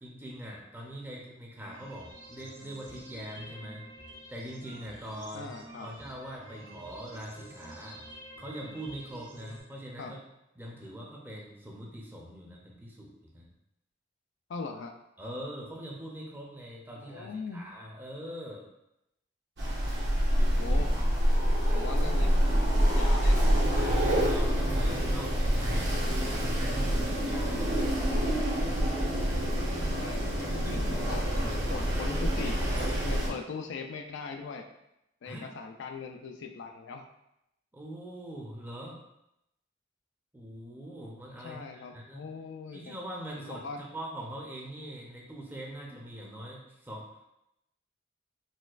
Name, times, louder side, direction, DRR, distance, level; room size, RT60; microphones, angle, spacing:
voice 1, 0.0-3.8 4.3-5.5 5.8-8.0 8.4-10.2 10.6-13.5 15.2-18.7 23.8-27.7 28.9-29.3 30.5-31.0 35.2-35.5 37.7-39.0 40.3-42.3 42.7-47.1, equal, 10° right, -2 dB, 0.5 m, -42 dB
sound 1, 1.6-9.6, right 1 dB, 80° right, 1.4 m, -49 dB
voice 2, 5.3-5.9 10.0-10.1 14.5-14.9 16.9-17.6 20.6-20.9 21.7-22.4 22.7-23.6 29.6-32.6 33.0-34.7 35.2-37.1 41.4-43.0 43.4-43.8, left 4 dB, 70° left, 4 dB, 0.3 m, -40 dB
Wind, 19.6-33.3, equal, 60° right, 0.9 m, -26 dB
4.1 x 2.3 x 2.4 m, 0.85 s
head